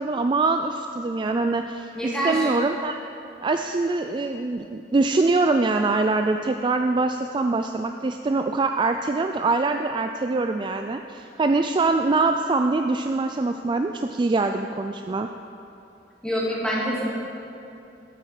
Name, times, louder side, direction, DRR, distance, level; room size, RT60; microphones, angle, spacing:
voice 1, 0.0-3.0 3.4-15.3, right 3 dB, 25° right, 6 dB, 0.3 m, -24 dB
voice 2, 1.9-2.5 16.2-17.1, equal, 5° left, -6 dB, 2.4 m, -26 dB
12.5 x 8.8 x 4.9 m, 2.7 s
head